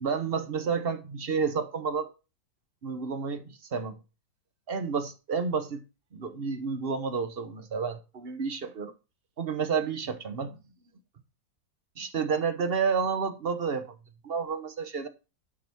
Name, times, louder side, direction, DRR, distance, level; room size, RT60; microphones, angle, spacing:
voice 1, 0.0-2.1 2.8-4.0 4.7-5.8 6.1-8.9 9.4-10.6 12.0-13.9 14.2-15.1, right 5 dB, 40° right, 0.9 m, -30 dB
11.5 x 5.8 x 4.5 m
omnidirectional pair, 2.0 m